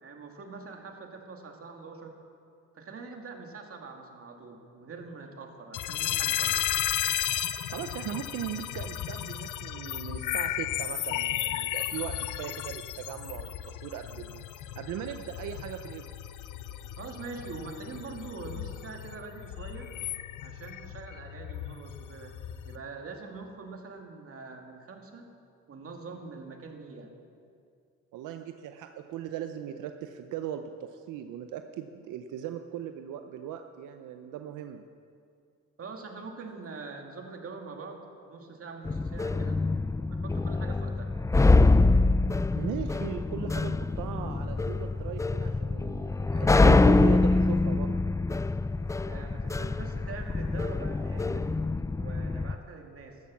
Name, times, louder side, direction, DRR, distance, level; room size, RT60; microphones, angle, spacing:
voice 1, 0.0-2.1 2.7-6.6 17.0-19.9 20.4-22.3 22.6-25.3 25.7-27.1 35.8-39.6 40.1-41.1 49.0-51.5 52.0-53.2, right 4 dB, 50° right, 2 dB, 2.4 m, -43 dB
sound 1, 5.7-22.8, left 11 dB, 80° left, 0.8 m, -34 dB
voice 2, 7.7-16.1 28.1-34.8 42.6-47.9, right 10 dB, 90° right, 7 dB, 0.7 m, -38 dB
sound 2, 38.9-52.6, left 3 dB, 10° left, 0.3 m, -25 dB
14.0 x 12.0 x 7.2 m, 2.4 s
cardioid pair, 90°, 30 cm